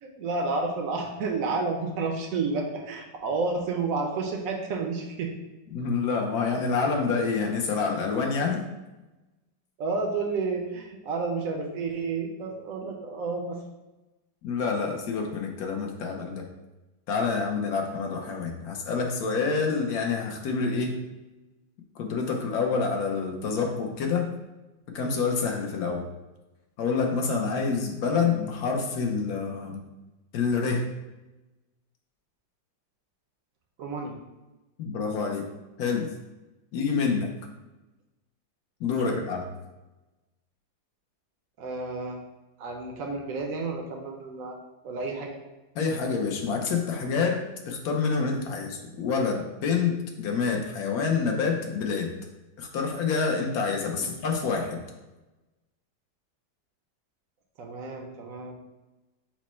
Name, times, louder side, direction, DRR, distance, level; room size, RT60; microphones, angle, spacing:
voice 1, 0.0-5.3 9.8-13.6 33.8-34.2 39.0-39.1 41.6-42.2 42.6-44.6 44.8-45.4 53.9-54.1 57.6-58.5, right 3 dB, 70° right, 1 dB, 0.8 m, -31 dB
voice 2, 5.7-8.6 14.4-16.5 17.1-21.0 22.0-24.3 24.9-26.0 26.8-29.8 30.3-30.9 34.8-35.5 35.8-36.1 36.7-37.3 38.8-39.5 45.7-52.1 52.6-54.8, left 5 dB, 70° left, 2 dB, 1.0 m, -27 dB
6.0 x 2.1 x 4.2 m, 1.1 s
omnidirectional pair, 2.0 m